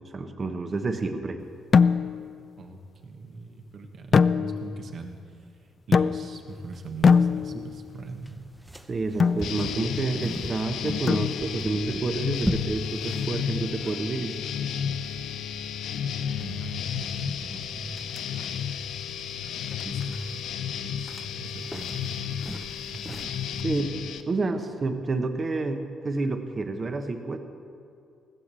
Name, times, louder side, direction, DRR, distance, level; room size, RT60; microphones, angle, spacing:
voice 1, 0.1-1.4 7.5-7.6 8.9-14.4 23.6-23.9 24.3-27.4, right 3 dB, 35° right, 7 dB, 1.1 m, -29 dB
sound 1, 1.7-2.4 4.1-4.9 5.9-6.5 7.0-7.8 9.2-9.5 11.1-11.7, left 5 dB, 45° left, 0.3 m, -22 dB
voice 2, 2.6-8.5 16.4-18.0 19.8-20.5 20.8-21.1 21.4-22.1 22.4-23.2 23.6-23.9, right 3 dB, 55° right, 4 dB, 1.4 m, -41 dB
sound 2, 6.5-23.6, equal, 5° right, 0.7 m, -41 dB
sound 3, 9.4-24.2, left 8 dB, 80° left, 0.6 m, -32 dB
16.0 x 6.6 x 7.5 m, 2.5 s
cardioid pair, 90°, 0 cm